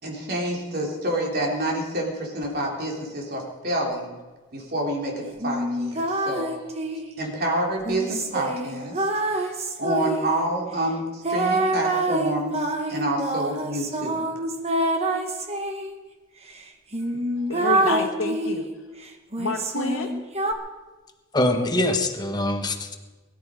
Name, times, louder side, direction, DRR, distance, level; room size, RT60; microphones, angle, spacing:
voice 1, 0.0-4.1 4.5-6.5 7.2-9.1 9.3-14.2, right 1 dB, 50° right, -1 dB, 3.5 m, -28 dB
sound 1, 5.4-7.1 7.8-10.4 11.2-15.9 16.5-16.6 16.9-18.7 19.3-20.5, right 1 dB, 30° right, 1.5 m, -26 dB
voice 2, 17.1-18.7 19.4-20.2, left 3 dB, 75° left, -2 dB, 1.5 m, -29 dB
voice 3, 21.3-22.9, left 1 dB, 20° left, 4 dB, 1.4 m, -23 dB
22.0 x 12.5 x 5.1 m, 1.3 s
head